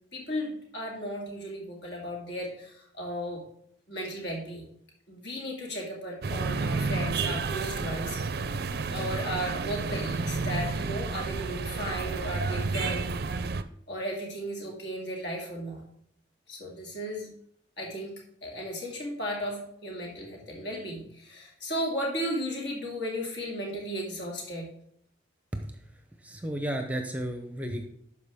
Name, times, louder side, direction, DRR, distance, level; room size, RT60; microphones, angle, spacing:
voice 1, 0.1-3.4 3.9-4.7 5.1-8.2 8.9-13.2 13.9-15.8 16.5-17.3 17.8-18.1 18.4-24.7, equal, 65° left, -1 dB, 2.4 m, -35 dB
sound 1, 6.2-13.6, right 4 dB, 55° right, 0.5 m, -31 dB
voice 2, 25.5-27.9, right 1 dB, 10° right, 5 dB, 0.7 m, -34 dB
12.0 x 4.8 x 3.6 m, 0.68 s
head